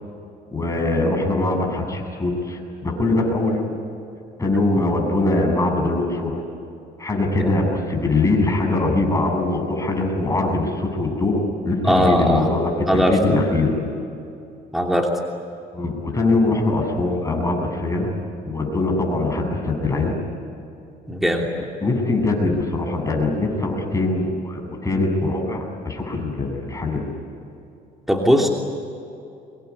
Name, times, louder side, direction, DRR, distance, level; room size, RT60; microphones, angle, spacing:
voice 1, 0.5-3.7 4.4-6.3 7.0-11.4 11.6-13.7 15.7-18.1 18.5-20.2 21.8-27.1, left 2 dB, 20° left, 2 dB, 7.7 m, -22 dB
voice 2, 11.8-12.5 12.9-13.4 14.7-15.1 21.1-21.5 28.1-28.5, equal, ahead, 1 dB, 3.1 m, -19 dB
25.5 x 21.5 x 10.0 m, 2.7 s
cardioid pair, 110°, 17 cm